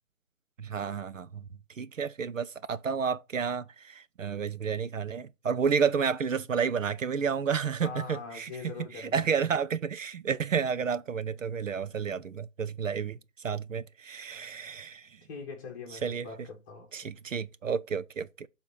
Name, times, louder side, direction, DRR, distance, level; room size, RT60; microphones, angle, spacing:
voice 1, 0.6-1.4 1.8-8.5 8.9-15.2 16.0-16.3 16.9-18.5, right 6 dB, 75° right, 0.6 m, -31 dB
voice 2, 7.8-9.3 15.3-17.1, left 5 dB, 15° left, 1.3 m, -42 dB
7.0 x 3.7 x 5.6 m
figure-of-eight pair, 150°, 39 cm